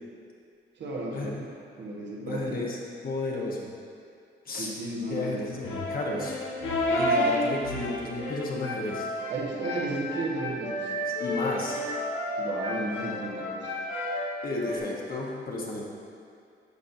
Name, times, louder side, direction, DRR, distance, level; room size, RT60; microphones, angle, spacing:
voice 1, 0.8-1.5 1.8-2.7 4.6-5.5 9.3-10.9 12.4-13.8, right 2 dB, 65° right, -3 dB, 1.5 m, -34 dB
voice 2, 2.2-2.8 3.0-3.7 4.5-4.7 5.1-6.4 6.9-9.1 11.2-11.8 14.4-15.8, left 2 dB, 45° left, -2 dB, 1.3 m, -32 dB
sound 1, 5.6-14.8, left 1 dB, 75° left, 1.4 m, -31 dB
12.0 x 4.4 x 2.8 m, 2.4 s
cardioid pair, 90°, 20 cm